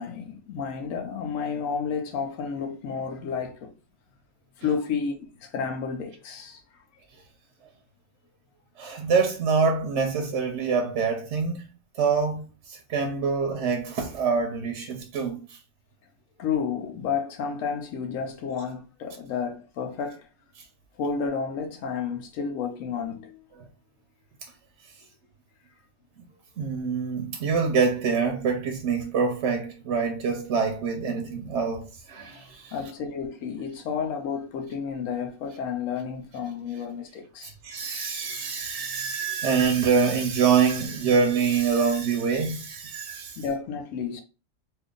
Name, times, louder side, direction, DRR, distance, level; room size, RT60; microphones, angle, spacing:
voice 1, 0.0-3.7 4.6-6.8 16.4-20.3 21.0-23.4 32.7-37.5 38.9-39.4 43.4-44.2, left 6 dB, 90° left, 1.0 m, -31 dB
voice 2, 8.8-11.7 12.0-15.6 20.6-20.7 23.6-23.7 26.2-26.3 26.6-32.7 37.4-43.4, right 5 dB, 70° right, 0.9 m, -25 dB
2.7 x 2.5 x 3.6 m
omnidirectional pair, 1.3 m